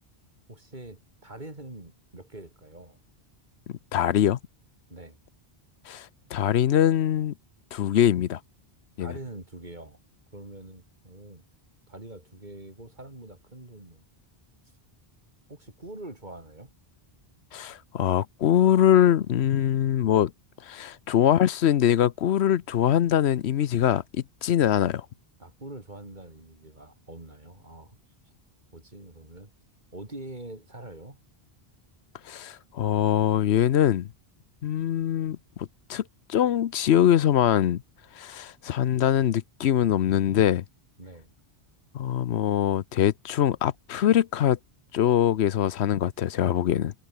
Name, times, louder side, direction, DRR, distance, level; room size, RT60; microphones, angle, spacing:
voice 1, 0.5-3.0 4.9-5.2 9.0-10.0 10.3-11.4 11.9-14.0 15.5-16.7 25.4-28.0 28.7-29.5 29.9-31.2 41.0-41.3, right 1 dB, 45° right, 4.3 m, -44 dB
voice 2, 3.7-4.4 5.9-7.3 7.7-8.4 9.0-9.1 17.5-20.3 20.6-24.0 24.4-25.1 32.3-34.1 34.6-36.0 36.3-37.8 38.2-40.6 41.9-44.6 44.9-46.9, left 10 dB, 85° left, 1.0 m, -23 dB
omnidirectional pair, 1.1 m